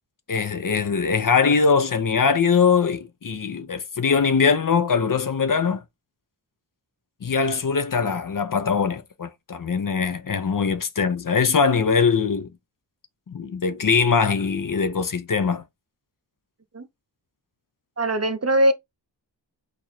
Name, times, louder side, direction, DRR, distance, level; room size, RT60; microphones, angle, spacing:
voice 1, 0.3-5.8 7.2-12.5 13.3-15.6, left 5 dB, 50° left, 0.5 m, -22 dB
voice 2, 18.0-18.7, right 1 dB, 35° right, 0.6 m, -20 dB
3.0 x 2.5 x 4.1 m
wide cardioid pair, 60°, 42 cm